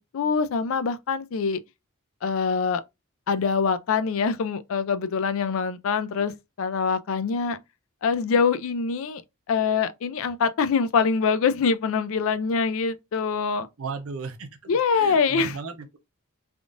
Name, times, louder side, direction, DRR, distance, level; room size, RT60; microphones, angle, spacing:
voice 1, 0.0-1.6 2.2-2.8 3.3-7.6 8.0-9.2 9.5-13.7 14.7-15.5, left 5 dB, 65° left, 0.4 m, -24 dB
voice 2, 13.8-16.0, right 4 dB, 70° right, 0.7 m, -36 dB
3.5 x 2.5 x 2.5 m
head